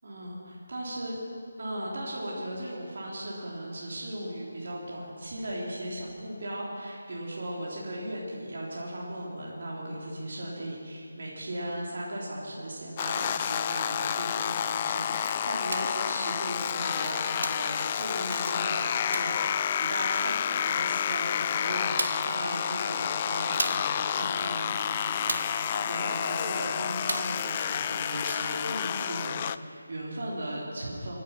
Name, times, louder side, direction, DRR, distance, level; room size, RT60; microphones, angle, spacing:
voice 1, 0.0-1.2 1.6-31.2, right 1 dB, 55° right, -5 dB, 3.7 m, -37 dB
sound 1, 13.0-29.6, left 9 dB, 25° left, 0.4 m, -30 dB
sound 2, 15.7-16.0 17.4-17.7 19.1-19.4 21.2-21.3 22.0-22.4 23.6-24.0 25.3-25.6 27.1-27.4, right 2 dB, 70° right, 1.3 m, -33 dB
24.5 x 8.5 x 5.9 m, 2.3 s
figure-of-eight pair, 155°, 0 cm